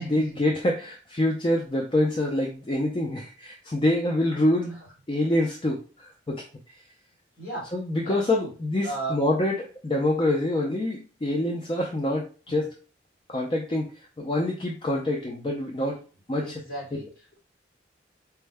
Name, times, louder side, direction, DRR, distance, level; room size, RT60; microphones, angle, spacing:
voice 1, 0.0-4.8 5.1-6.4 7.7-12.7 13.3-13.9 14.2-16.0 16.3-16.6, left 1 dB, 25° left, 0 dB, 0.4 m, -26 dB
voice 2, 7.4-7.7 8.0-8.5 8.8-9.1 16.4-17.1, right 2 dB, 45° left, -3 dB, 1.8 m, -35 dB
4.4 x 2.1 x 3.3 m, 0.37 s
head